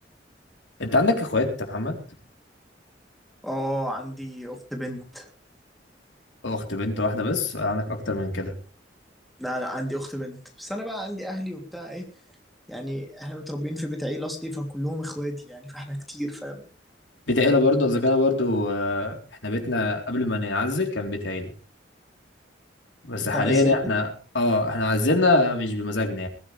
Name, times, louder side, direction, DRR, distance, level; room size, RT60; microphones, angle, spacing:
voice 1, 0.8-2.0 6.4-8.5 17.3-19.2 19.4-21.5 23.0-26.3, left 2 dB, 85° left, 3 dB, 3.9 m, -23 dB
voice 2, 3.4-5.3 9.4-12.1 12.7-16.6 23.2-23.9, equal, ahead, 1 dB, 3.1 m, -32 dB
21.0 x 15.0 x 3.4 m, 0.36 s
head